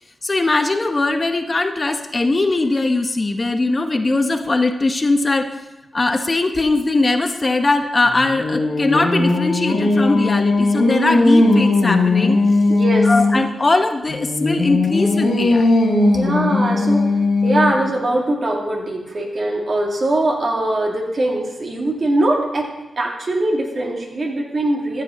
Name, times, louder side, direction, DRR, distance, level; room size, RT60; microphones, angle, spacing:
voice 1, 0.2-5.6 5.9-12.4 13.0-15.8, left 2 dB, 35° left, 7 dB, 0.8 m, -20 dB
Singing, 8.0-13.5 14.1-18.0, left 2 dB, 85° left, 1.6 m, -18 dB
voice 2, 12.7-13.1 16.1-17.1 17.4-22.7 23.0-25.0, right 1 dB, 55° right, -1 dB, 2.3 m, -21 dB
14.5 x 6.7 x 4.1 m, 1.0 s
cardioid pair, 50°, 0 cm